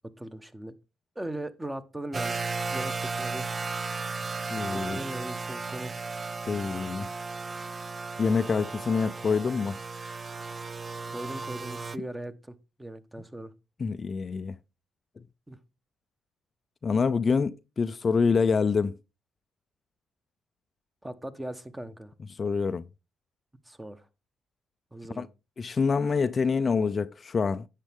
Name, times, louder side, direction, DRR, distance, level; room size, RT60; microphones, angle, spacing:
voice 1, 0.2-0.7 1.1-2.4 2.7-3.5 4.7-5.9 11.1-13.5 15.5-15.6 21.0-22.1 23.7-24.1 24.9-25.3, right 1 dB, 10° right, 1.1 m, -39 dB
sound 1, 2.1-12.0, right 4 dB, 30° right, 0.4 m, -35 dB
voice 2, 4.5-5.0 6.5-7.1 8.2-9.8 13.8-14.6 16.8-19.0 22.3-22.9 25.2-25.3 25.6-27.7, left 5 dB, 35° left, 0.4 m, -26 dB
10.0 x 7.3 x 3.6 m
cardioid pair, 90°, 0 cm